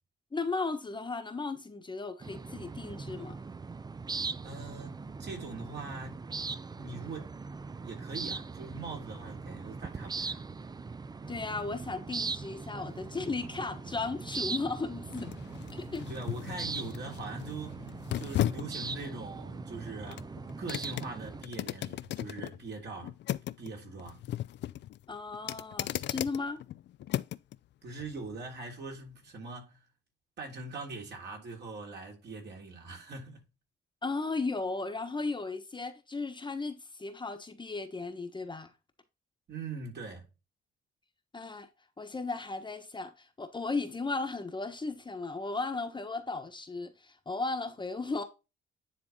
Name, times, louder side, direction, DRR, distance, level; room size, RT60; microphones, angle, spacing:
voice 1, 0.3-3.4 11.3-15.3 15.7-16.1 25.1-26.6 34.0-38.7 41.3-41.7 42.0-48.2, left 3 dB, 25° left, 1.2 m, -35 dB
sound 1, 2.2-21.4, right 4 dB, 20° right, 0.5 m, -40 dB
voice 2, 4.4-7.3 7.8-10.4 16.1-17.8 18.2-20.3 20.6-23.1 23.6-24.2 27.8-29.8 30.4-33.5 39.5-40.2, right 3 dB, 60° right, 3.2 m, -42 dB
sound 2, 12.9-27.6 28.0-28.1, left 13 dB, 65° left, 0.4 m, -38 dB
9.9 x 3.5 x 4.0 m
cardioid pair, 90°, 20 cm